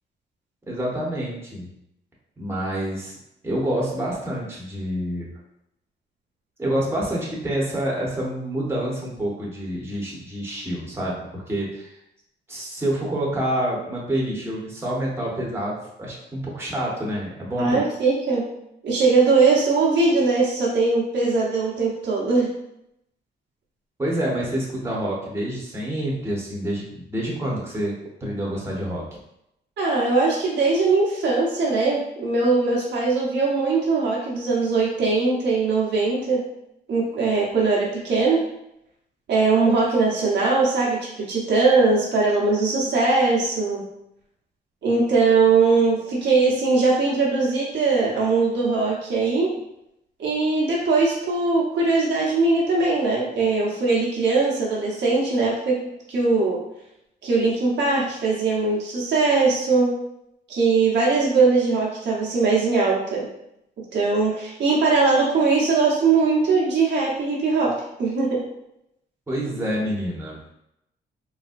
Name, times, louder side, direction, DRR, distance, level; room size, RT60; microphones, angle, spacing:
voice 1, 0.7-1.7 2.4-3.1 3.4-5.3 6.6-11.9 12.5-17.8 24.0-28.0 28.2-29.0 69.3-70.4, right 1 dB, 15° right, -4 dB, 1.1 m, -27 dB
voice 2, 17.6-18.4 18.8-22.5 29.8-36.4 36.9-38.4 39.3-43.8 44.8-49.5 50.2-55.8 56.1-56.6 57.2-59.9 60.5-63.3 63.9-67.7 68.0-68.4, right 3 dB, 70° right, -5 dB, 1.0 m, -20 dB
4.1 x 2.2 x 2.5 m, 0.80 s
cardioid pair, 80°, 19 cm